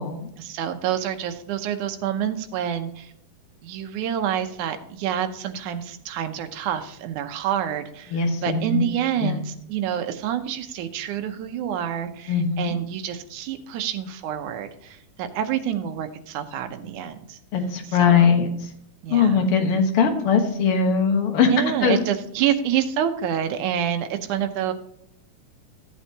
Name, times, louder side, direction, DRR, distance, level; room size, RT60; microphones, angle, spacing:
voice 1, 0.4-3.1 3.6-17.4 17.8-18.4 19.0-19.5 21.4-24.7, right 10 dB, 75° right, 7 dB, 2.2 m, -27 dB
voice 2, 8.1-8.8 9.2-9.4 12.3-12.8 17.5-18.5 19.1-21.5 21.8-22.0, left 6 dB, 55° left, 4 dB, 1.7 m, -20 dB
14.5 x 7.8 x 2.8 m, 0.73 s
omnidirectional pair, 3.8 m